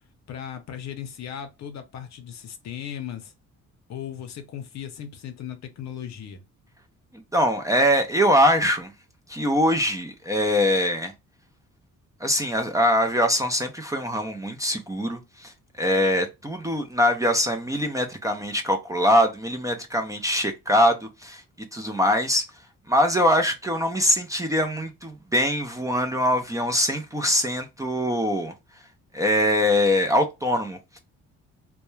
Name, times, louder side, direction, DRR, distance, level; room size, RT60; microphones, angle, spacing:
voice 1, 0.3-3.3 3.9-6.4, left 9 dB, 65° left, 0.6 m, -37 dB
voice 2, 7.3-8.9 9.3-11.1 12.2-15.5 15.8-21.4 21.7-22.4 22.9-28.5 29.1-31.0, equal, 10° right, 0.4 m, -23 dB
2.2 x 2.1 x 3.0 m
cardioid pair, 90°, 30 cm